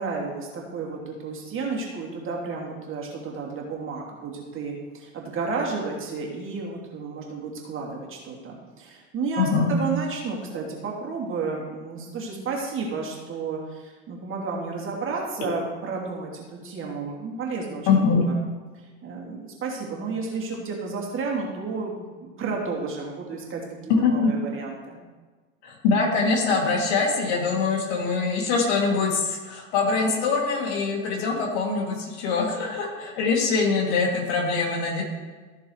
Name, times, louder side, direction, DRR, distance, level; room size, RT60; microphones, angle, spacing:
voice 1, 0.0-17.9 18.2-18.4 19.0-25.0, right 4 dB, 30° right, -2 dB, 2.6 m, -32 dB
voice 2, 9.4-9.7 17.9-18.2 23.9-24.3 25.6-35.0, left 4 dB, 55° left, -1 dB, 3.0 m, -23 dB
15.0 x 6.6 x 3.3 m, 1.3 s
figure-of-eight pair, 85°, 39 cm